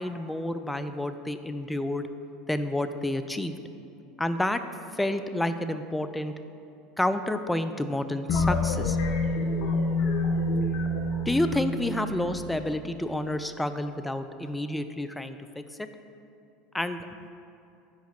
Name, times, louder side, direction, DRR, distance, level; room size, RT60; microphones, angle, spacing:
voice 1, 0.0-2.0 2.5-3.5 4.2-4.6 4.9-6.3 7.0-9.0 11.3-15.9 16.7-17.1, left 1 dB, 5° left, 10 dB, 0.3 m, -29 dB
sound 1, 8.3-13.0, left 2 dB, 50° left, 0.6 m, -27 dB
5.1 x 4.8 x 6.1 m, 2.6 s
figure-of-eight pair, 75°, 0 cm